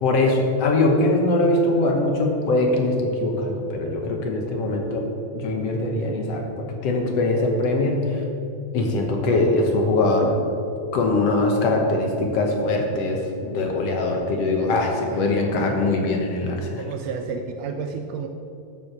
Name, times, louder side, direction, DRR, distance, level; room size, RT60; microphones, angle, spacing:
voice 1, 0.0-5.1 5.3-8.2 8.7-10.3 10.9-16.8, left 2 dB, 65° left, 2 dB, 2.0 m, -22 dB
voice 2, 16.6-18.3, right 5 dB, 75° right, 6 dB, 1.6 m, -32 dB
11.5 x 7.7 x 5.9 m, 2.7 s
omnidirectional pair, 3.4 m